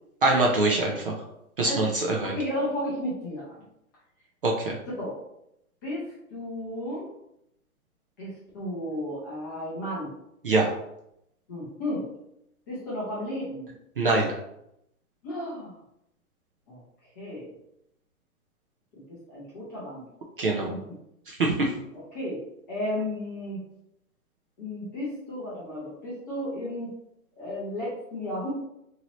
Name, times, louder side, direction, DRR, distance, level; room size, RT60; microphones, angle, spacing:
voice 1, 0.2-1.1 1.6-2.3 4.4-4.8 10.4-10.7 14.0-14.3 20.4-20.7 21.3-21.7, right 2 dB, 40° right, -1 dB, 0.4 m, -24 dB
voice 2, 1.6-3.6 5.0-5.2 5.8-7.1 8.2-10.1 11.5-12.1 12.7-13.7 15.2-15.7 16.7-16.8 17.2-17.5 18.9-20.0 20.7-20.8 21.9-22.4 22.7-23.6 24.6-26.9 27.4-28.5, left 1 dB, 15° left, -8 dB, 0.5 m, -33 dB
2.8 x 2.7 x 3.0 m, 0.80 s
hypercardioid pair, 150°, 44 cm